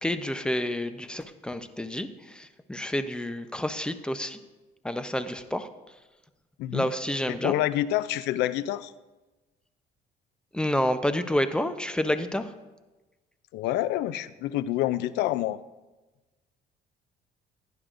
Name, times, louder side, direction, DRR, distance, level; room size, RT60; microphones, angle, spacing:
voice 1, 0.0-4.4 4.8-5.7 6.7-7.5 10.5-12.5, left 1 dB, 5° left, 10 dB, 0.7 m, -29 dB
voice 2, 7.3-8.9 13.5-15.6, left 14 dB, 85° left, 16 dB, 0.5 m, -27 dB
16.0 x 10.5 x 2.5 m, 1.1 s
cardioid pair, 110°, 17 cm